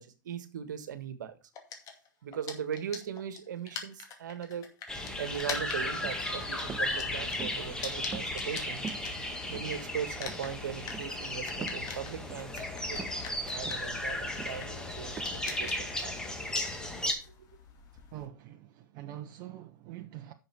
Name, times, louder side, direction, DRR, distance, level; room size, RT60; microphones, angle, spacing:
voice 1, 0.0-1.3 2.2-4.7 5.2-8.8 9.5-13.0 13.5-16.2, right 8 dB, 70° right, 1.6 m, -39 dB
sound 1, 1.5-9.7 10.0-18.3, left 6 dB, 35° left, 2.4 m, -44 dB
sound 2, 4.9-17.1, left 1 dB, 5° left, 2.0 m, -35 dB
sound 3, 6.0-6.2 6.7-6.9 7.4-7.7 8.1-8.6 8.8-9.1 9.5-10.0 10.2-10.5 10.9-11.1 11.6-11.9 12.3-12.5 13.0-13.2 13.6-13.9 14.4-14.6 15.2-15.3, right 6 dB, 15° right, 0.5 m, -43 dB
voice 2, 18.1-20.3, right 12 dB, 45° right, 0.9 m, -44 dB
10.0 x 6.5 x 4.6 m
hypercardioid pair, 105°, 10 cm